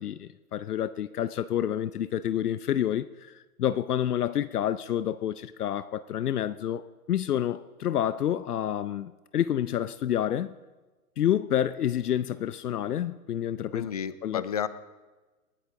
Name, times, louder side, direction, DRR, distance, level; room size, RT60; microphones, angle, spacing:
voice 1, 0.0-3.3 3.6-6.8 7.1-10.5 11.2-13.9 14.2-14.4, left 10 dB, 70° left, 0.8 m, -28 dB
voice 2, 13.7-14.7, left 8 dB, 25° left, 0.4 m, -31 dB
27.5 x 10.0 x 3.8 m
hypercardioid pair, 140°, 47 cm